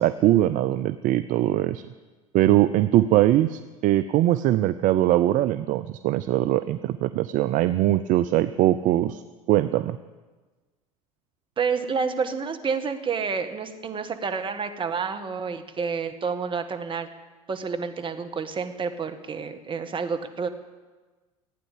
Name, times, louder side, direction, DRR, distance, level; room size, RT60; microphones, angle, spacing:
voice 1, 0.0-1.8 2.3-9.2 9.5-10.0, right 14 dB, 50° right, 12 dB, 0.5 m, -21 dB
voice 2, 11.6-17.1 17.5-20.5, right 5 dB, 30° right, 7 dB, 1.6 m, -29 dB
16.0 x 9.2 x 8.5 m, 1.3 s
hypercardioid pair, 75°, 17 cm